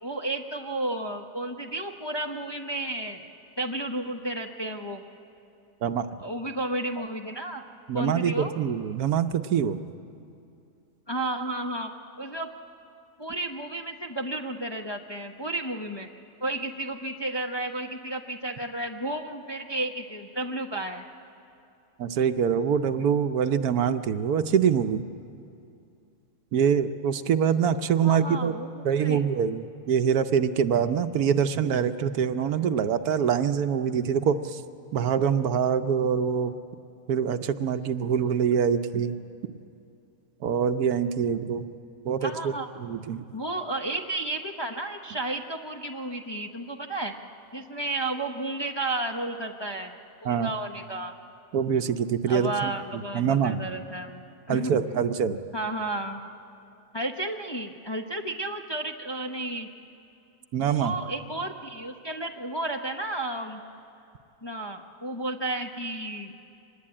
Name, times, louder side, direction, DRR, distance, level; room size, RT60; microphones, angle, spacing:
voice 1, 0.0-3.3 3.6-5.0 6.2-7.6 7.9-8.6 11.1-11.9 12.2-12.5 13.2-16.1 16.4-21.0 28.0-29.2 42.2-42.7 43.3-47.2 47.5-49.9 50.2-51.1 52.3-54.2 54.5-54.8 55.5-56.3 56.9-59.7 60.6-63.6 64.4-66.3, right 2 dB, 20° left, 3 dB, 0.8 m, -32 dB
voice 2, 7.9-9.8 22.0-25.0 26.5-28.5 28.8-34.6 34.9-36.6 37.1-39.2 40.4-41.7 42.0-43.2 50.2-50.5 51.5-53.7 54.5-55.4 60.5-61.0, right 7 dB, 70° right, 10 dB, 1.2 m, -25 dB
24.5 x 20.0 x 8.7 m, 2.6 s
omnidirectional pair, 1.7 m